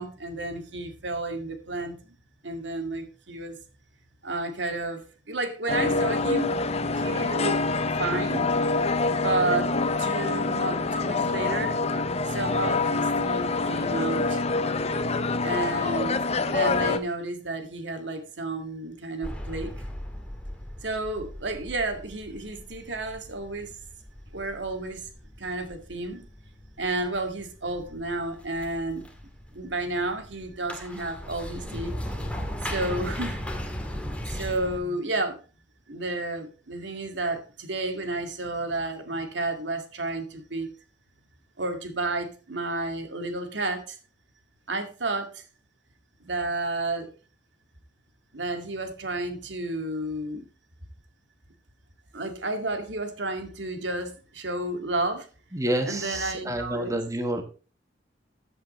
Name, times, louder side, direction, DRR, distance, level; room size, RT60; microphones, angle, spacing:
voice 1, 0.0-2.1 2.4-3.6 4.2-6.5 7.0-7.6 8.0-8.4 9.2-9.7 10.0-11.8 12.3-14.4 15.4-16.1 16.5-19.7 20.8-23.7 24.3-25.0 25.4-26.2 26.8-29.0 29.5-31.9 32.6-33.4 34.2-35.4 35.9-40.7 41.6-44.0 44.7-45.3 46.2-47.1 48.3-50.5 52.1-55.3 55.9-57.0, right 2 dB, 80° right, 6 dB, 2.2 m, -31 dB
sound 1, 5.7-17.0, left 3 dB, 35° left, 0.8 m, -26 dB
sound 2, 19.2-34.8, equal, 5° left, 1.9 m, -38 dB
voice 2, 55.5-57.4, right 1 dB, 20° right, 6 dB, 1.4 m, -29 dB
14.0 x 7.9 x 3.1 m, 0.35 s
head